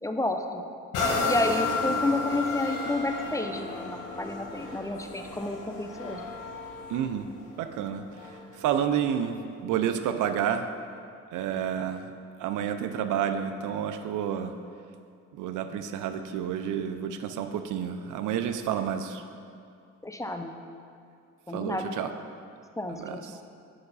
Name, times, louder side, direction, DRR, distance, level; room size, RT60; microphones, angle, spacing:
voice 1, 0.0-0.6 1.2-6.2 20.0-20.5 21.5-21.9 22.8-23.4, left 2 dB, 10° left, 5 dB, 0.5 m, -30 dB
sound 1, 0.9-8.5 9.1-9.2, left 3 dB, 85° left, 1.3 m, -32 dB
voice 2, 6.9-7.3 7.6-8.0 8.6-10.7 11.3-12.1 12.4-14.5 15.3-19.2 21.5-22.1 22.9-23.4, right 9 dB, 80° right, 8 dB, 0.5 m, -30 dB
7.8 x 5.7 x 4.0 m, 2.4 s
cardioid pair, 90°, 30 cm